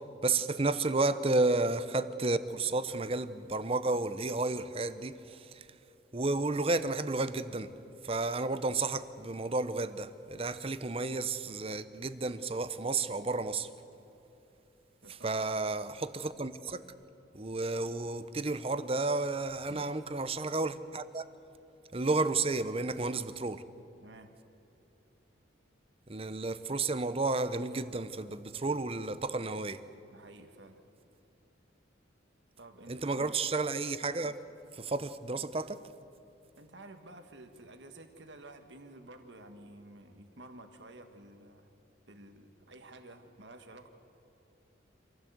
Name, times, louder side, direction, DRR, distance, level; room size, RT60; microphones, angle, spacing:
voice 1, 0.2-5.6 6.1-7.7 8.0-13.7 15.2-16.8 17.3-21.3 21.9-23.6 26.1-29.8 32.9-34.4 34.7-35.8, right 3 dB, 30° right, 13 dB, 0.8 m, -32 dB
voice 2, 15.0-15.5 19.7-20.0 24.0-24.3 30.1-30.8 32.6-33.4 36.6-41.7 42.1-43.9, right 2 dB, 65° right, 6 dB, 1.6 m, -51 dB
26.5 x 16.0 x 8.0 m, 2.9 s
head